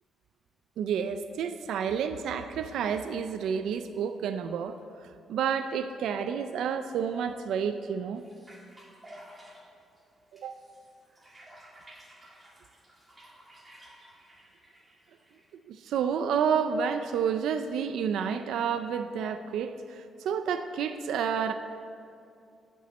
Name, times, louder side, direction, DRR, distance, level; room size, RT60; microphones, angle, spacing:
voice 1, 0.8-4.8 5.0-8.2 10.3-10.5 15.7-21.5, right 7 dB, 90° right, 9 dB, 0.4 m, -30 dB
sound 1, 8.2-15.5, equal, 15° right, 1.8 m, -54 dB
11.5 x 6.1 x 7.3 m, 2.5 s
cardioid pair, 140°, 0 cm